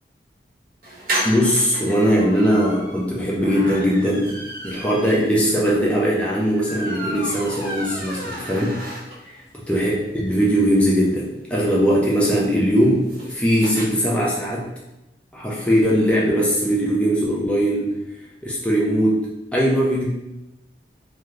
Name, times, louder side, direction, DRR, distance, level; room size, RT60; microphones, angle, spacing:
sound 1, 0.8-9.4 9.8-9.9 10.1-10.2 10.5-13.9, right 1 dB, 50° right, 0.8 m, -33 dB
voice 1, 1.2-4.4 4.6-8.8 9.7-14.7 15.3-19.3 19.5-20.1, equal, 5° left, -4 dB, 0.4 m, -20 dB
2.6 x 2.4 x 3.1 m, 0.93 s
head